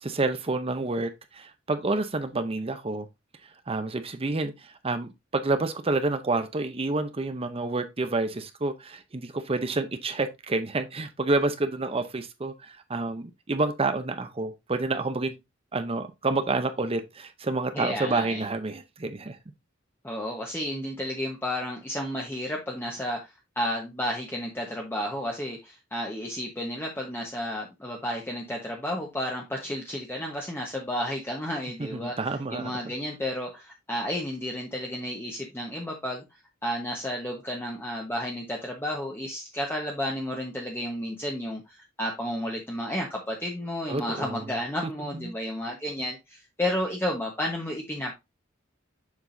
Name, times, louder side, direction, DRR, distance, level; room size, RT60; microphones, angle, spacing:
voice 1, 0.0-3.1 3.7-15.3 15.7-19.4 31.8-32.7 43.9-44.5 45.1-45.3, right 3 dB, 30° right, 0.6 m, -29 dB
voice 2, 17.7-18.4 20.0-32.1 32.5-36.2 36.6-48.1, left 1 dB, 10° left, 1.1 m, -32 dB
7.2 x 6.0 x 2.6 m
head